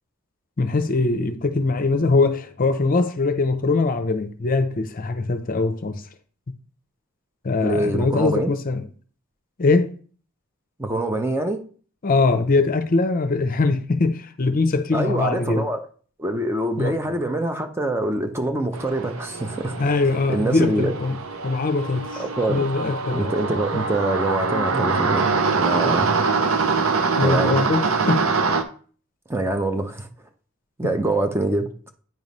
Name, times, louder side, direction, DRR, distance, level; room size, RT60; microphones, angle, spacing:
voice 1, 0.6-6.0 7.4-8.9 9.6-9.9 12.0-15.6 16.8-17.0 19.8-21.2 21.4-22.2 22.5-23.3 27.2-28.3 30.8-30.9, left 3 dB, 40° left, 0.6 m, -22 dB
voice 2, 7.6-8.5 10.8-11.6 14.9-15.9 16.2-19.8 20.3-20.9 22.2-22.6 23.1-25.3 25.6-26.1 27.2-27.6 29.3-30.1 30.8-31.7, right 1 dB, 10° right, 0.7 m, -24 dB
sound 1, 18.7-28.6, right 4 dB, 75° right, 0.8 m, -24 dB
9.2 x 3.1 x 5.3 m
head